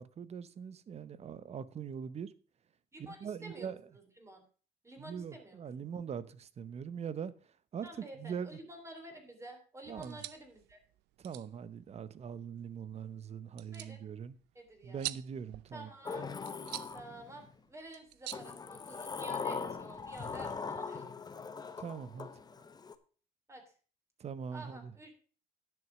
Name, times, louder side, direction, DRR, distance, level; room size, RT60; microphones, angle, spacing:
voice 1, 0.0-2.3 3.0-3.8 5.0-7.3 7.7-7.9 8.2-8.5 9.9-10.2 11.2-14.4 14.8-15.9 21.8-22.3 24.2-24.9, right 7 dB, 40° right, 0.8 m, -42 dB
voice 2, 2.9-4.4 4.8-5.9 7.8-10.8 13.7-14.0 14.5-15.1 15.7-16.3 16.9-21.2 23.5-23.6 24.5-25.1, right 1 dB, 15° right, 3.3 m, -50 dB
sound 1, 9.9-19.4, right 18 dB, 85° right, 0.5 m, -48 dB
Sliding door, 16.1-17.5 18.3-23.0, left 5 dB, 25° left, 0.9 m, -41 dB
10.5 x 6.4 x 6.0 m
cardioid pair, 110°, 17 cm